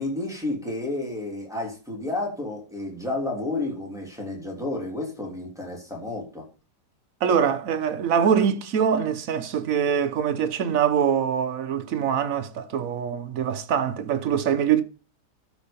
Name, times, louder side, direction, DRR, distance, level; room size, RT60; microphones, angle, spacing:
voice 1, 0.0-6.5, left 2 dB, ahead, 3.0 m, -31 dB
voice 2, 7.2-14.8, right 8 dB, 55° right, 1.1 m, -23 dB
13.0 x 4.6 x 5.3 m
omnidirectional pair, 1.9 m